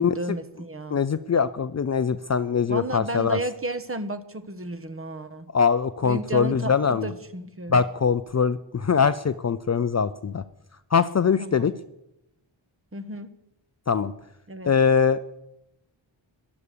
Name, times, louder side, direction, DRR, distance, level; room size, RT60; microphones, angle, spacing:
voice 1, 0.0-1.0 2.7-5.5 6.0-7.8 11.4-11.7 12.9-13.3 14.5-14.7, right 2 dB, 30° right, 11 dB, 1.2 m, -33 dB
voice 2, 0.9-3.4 5.5-7.1 7.7-10.4 10.9-11.7 13.9-14.1 14.7-15.2, left 6 dB, 35° left, 14 dB, 0.5 m, -22 dB
14.0 x 11.5 x 6.8 m, 0.86 s
wide cardioid pair, 80°, 47 cm